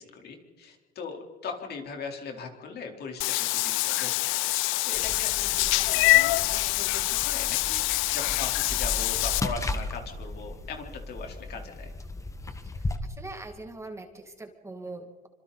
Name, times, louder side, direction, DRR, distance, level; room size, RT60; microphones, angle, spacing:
voice 1, 0.0-4.5 4.8-7.8 8.1-11.9, left 5 dB, 55° left, 2 dB, 4.2 m, -40 dB
Meow / Water / Bathtub (filling or washing), 3.2-9.4, left 21 dB, 80° left, 0.5 m, -25 dB
sound 1, 4.9-13.0, left 2 dB, 15° left, 1.6 m, -36 dB
voice 2, 12.8-15.3, right 2 dB, 15° right, 4 dB, 2.4 m, -42 dB
27.0 x 26.0 x 4.2 m, 1.5 s
cardioid pair, 120°, 20 cm